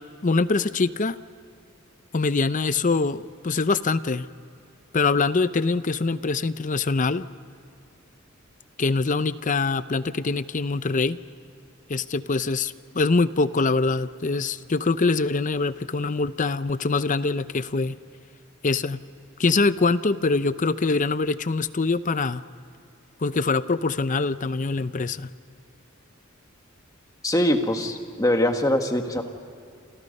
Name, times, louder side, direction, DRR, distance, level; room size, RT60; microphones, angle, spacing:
voice 1, 0.2-1.2 2.1-4.3 4.9-7.3 8.8-11.2 11.9-18.0 18.6-19.0 19.4-22.4 23.2-25.3, left 3 dB, 40° left, 14 dB, 0.6 m, -24 dB
voice 2, 27.2-29.3, left 1 dB, 15° left, 5 dB, 1.7 m, -23 dB
28.5 x 28.0 x 5.4 m, 2.5 s
head